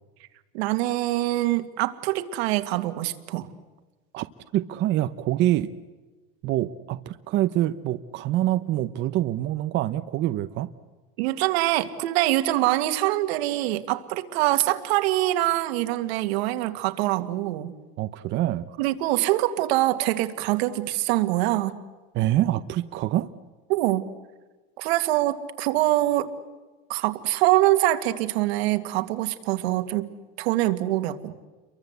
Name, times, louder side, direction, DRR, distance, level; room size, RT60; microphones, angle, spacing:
voice 1, 0.5-3.5 11.2-17.7 18.8-21.8 23.7-24.1 24.8-26.3 26.9-30.1 30.4-31.3, right 16 dB, 85° right, 8 dB, 2.2 m, -24 dB
voice 2, 4.5-5.7 6.4-10.7 18.0-18.7 22.1-23.3, right 14 dB, 35° right, 10 dB, 0.8 m, -25 dB
30.0 x 23.5 x 8.2 m, 1.2 s
cardioid pair, 175°, 31 cm